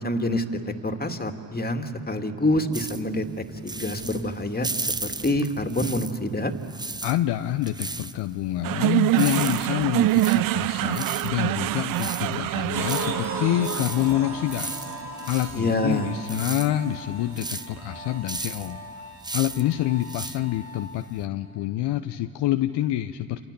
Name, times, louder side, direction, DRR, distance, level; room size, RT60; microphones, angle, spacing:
voice 1, 0.0-6.5 15.6-16.1, left 1 dB, 20° left, 6 dB, 2.5 m, -27 dB
sound 1, 2.7-6.3 6.6-21.2, right 2 dB, 10° right, 0.8 m, -36 dB
voice 2, 7.0-14.7 15.3-18.8 19.3-23.5, left 13 dB, 65° left, 7 dB, 0.9 m, -27 dB
sound 2, 8.6-17.1, right 16 dB, 50° right, 0.5 m, -26 dB
sound 3, 12.7-21.1, right 1 dB, 35° right, 4.0 m, -38 dB
29.5 x 26.0 x 7.0 m, 2.6 s
hypercardioid pair, 45°, 44 cm